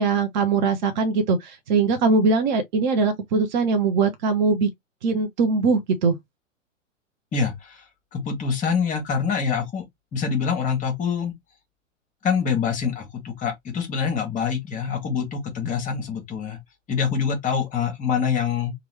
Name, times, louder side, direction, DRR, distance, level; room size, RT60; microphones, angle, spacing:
voice 1, 0.0-4.7 5.0-6.2, right 4 dB, 35° right, 0.8 m, -21 dB
voice 2, 7.3-7.8 8.1-9.8 10.1-11.3 12.2-16.6 16.9-18.7, left 6 dB, 20° left, 1.1 m, -25 dB
3.0 x 2.4 x 3.2 m
figure-of-eight pair, 105°, 39 cm